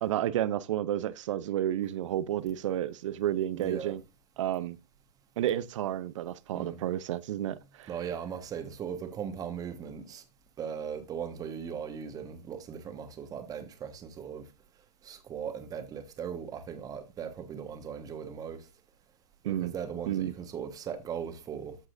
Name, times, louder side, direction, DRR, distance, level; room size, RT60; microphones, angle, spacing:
voice 1, 0.0-4.0 4.4-4.8 5.4-7.9 19.4-19.7 20.1-20.3, right 12 dB, 50° right, 0.7 m, -31 dB
voice 2, 3.5-3.9 6.5-6.8 7.9-10.2 10.6-14.4 15.0-18.7 19.4-21.8, right 7 dB, 20° right, 1.4 m, -38 dB
14.0 x 4.7 x 2.6 m
hypercardioid pair, 125°, 20 cm